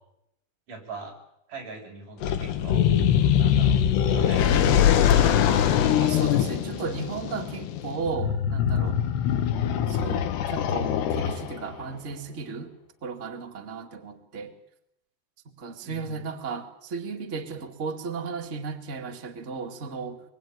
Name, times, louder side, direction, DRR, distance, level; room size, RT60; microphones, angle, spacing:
voice 1, 0.7-1.2 1.5-2.9 3.4-5.9 15.8-16.2, right 3 dB, 40° right, 1 dB, 7.5 m, -41 dB
sound 1, 2.2-11.7, left 9 dB, 70° left, 3.3 m, -23 dB
voice 2, 6.0-9.0 9.9-12.7 13.0-14.5 15.4-20.2, right 5 dB, 85° right, 3 dB, 0.6 m, -35 dB
25.5 x 23.5 x 9.4 m, 0.81 s
omnidirectional pair, 5.6 m